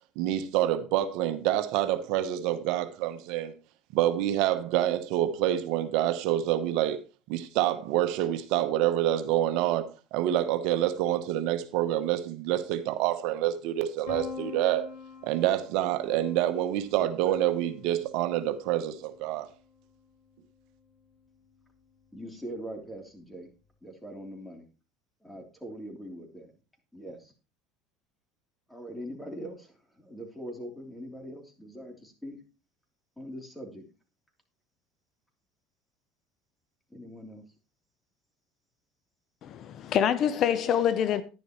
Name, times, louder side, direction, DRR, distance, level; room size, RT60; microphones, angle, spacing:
voice 1, 0.2-3.5 3.9-7.0 7.3-14.9 15.2-19.5, right 12 dB, 70° right, 0.9 m, -27 dB
Piano, 14.1-19.8, left 5 dB, 80° left, 5.0 m, -45 dB
voice 2, 22.1-23.5 23.8-24.6 25.2-26.5 26.9-27.3 28.7-32.4 33.2-33.8 36.9-37.4, equal, 5° left, 3.2 m, -42 dB
voice 3, 39.4-41.2, left 9 dB, 50° left, 0.7 m, -25 dB
10.5 x 10.5 x 3.1 m
supercardioid pair, 100°, 0 cm